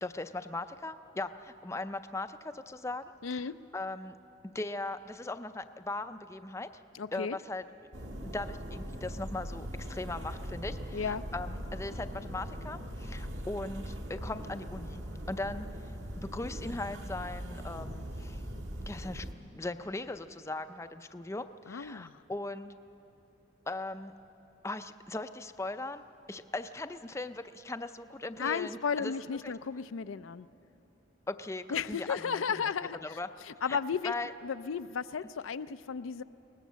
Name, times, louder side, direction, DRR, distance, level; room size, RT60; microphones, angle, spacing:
voice 1, 0.0-4.2 4.4-6.7 7.1-7.6 8.2-15.0 15.3-15.7 16.2-18.4 18.9-19.3 19.5-22.7 23.7-24.1 24.6-26.0 26.3-29.1 29.4-29.5 31.3-32.6 33.0-33.3 33.7-33.8 34.0-34.3, left 2 dB, 15° left, 10 dB, 0.4 m, -39 dB
voice 2, 3.2-3.5 6.9-7.4 10.9-11.2 21.7-22.2 28.4-30.5 31.7-33.0 33.5-34.1 34.4-36.2, left 6 dB, 80° left, 13 dB, 0.5 m, -34 dB
sound 1, 7.9-19.3, equal, 60° right, 1.8 m, -40 dB
22.5 x 19.0 x 7.4 m, 3.0 s
head